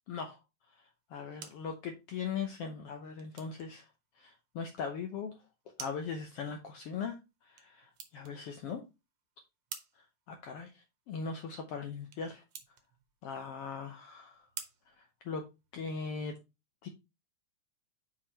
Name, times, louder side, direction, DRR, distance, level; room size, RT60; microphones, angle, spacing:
voice 1, 0.1-0.4 1.1-3.8 4.2-5.3 5.8-7.2 7.5-8.8 10.3-10.7 11.1-12.4 13.2-14.5 15.0-15.4 15.7-16.3 16.8-16.9, left 5 dB, 70° left, 5 dB, 1.4 m, -39 dB
sound 1, 0.9-15.9, right 8 dB, 65° right, 1.9 m, -53 dB
5.8 x 4.8 x 4.4 m, 0.25 s
omnidirectional pair, 3.5 m